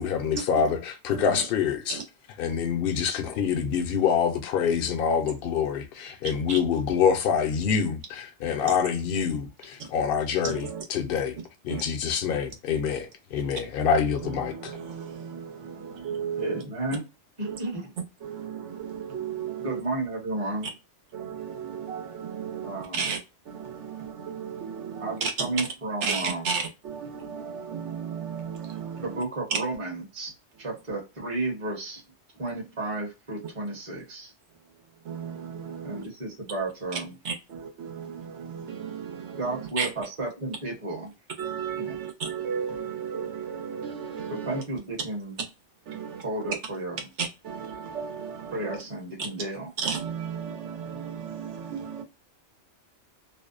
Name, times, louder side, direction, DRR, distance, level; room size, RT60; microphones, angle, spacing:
voice 1, 0.0-2.0 2.4-11.4 11.6-14.7, left 7 dB, 65° left, 0.7 m, -26 dB
voice 2, 10.4-10.8 11.7-11.8 14.4-16.6 17.4-17.6 18.2-19.8 21.1-23.2 23.5-25.6 26.0-29.2 35.0-36.0 37.2-39.9 41.4-44.6 45.9-46.5 47.2-48.8 49.8-52.0, right 6 dB, 80° right, 1.1 m, -34 dB
voice 3, 16.4-17.1 17.4-17.9 19.6-20.7 22.6-23.1 25.0-26.5 29.0-30.3 30.6-32.0 32.4-34.3 35.8-37.2 39.4-41.1 41.8-42.0 44.3-45.4 46.2-47.0 48.5-49.7, right 2 dB, 35° right, 0.8 m, -32 dB
2.6 x 2.1 x 2.3 m
omnidirectional pair, 1.2 m